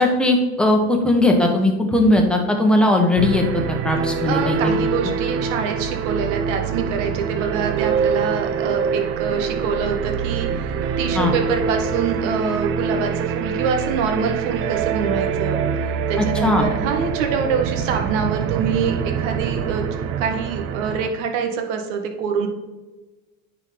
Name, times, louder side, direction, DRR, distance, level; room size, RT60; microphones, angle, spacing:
voice 1, 0.0-4.7 11.1-11.3 16.2-16.7, left 2 dB, ahead, 1 dB, 1.2 m, -18 dB
sound 1, 3.2-21.1, right 6 dB, 35° right, 0.5 m, -25 dB
voice 2, 4.2-15.6 16.1-19.8 20.2-22.5, right 6 dB, 65° right, 4 dB, 1.5 m, -25 dB
9.7 x 4.7 x 3.8 m, 1.2 s
supercardioid pair, 130°, 40 cm